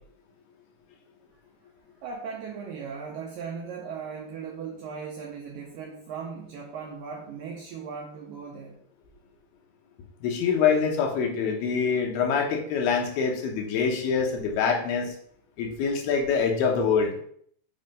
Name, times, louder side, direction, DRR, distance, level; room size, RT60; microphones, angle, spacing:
voice 1, 2.0-8.8, right 6 dB, 80° right, 0 dB, 2.0 m, -38 dB
voice 2, 10.2-15.1 15.6-17.2, left 6 dB, 75° left, 2 dB, 2.9 m, -25 dB
7.3 x 3.3 x 5.3 m, 0.63 s
omnidirectional pair, 4.8 m